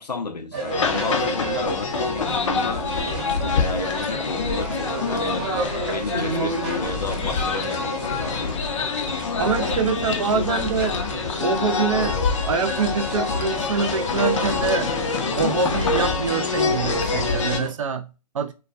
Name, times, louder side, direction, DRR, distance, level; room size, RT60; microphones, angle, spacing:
voice 1, 0.0-2.9 3.3-5.5 5.9-8.6 9.9-10.5, left 3 dB, 90° left, 0.7 m, -32 dB
sound 1, 0.5-17.7, right 2 dB, 30° right, 0.8 m, -32 dB
sound 2, 0.7-17.6, left 5 dB, 50° left, 0.5 m, -26 dB
voice 2, 9.4-11.0 11.4-14.9 15.2-18.5, right 5 dB, 55° right, 0.4 m, -25 dB
2.3 x 2.2 x 2.4 m
figure-of-eight pair, 145°, 20 cm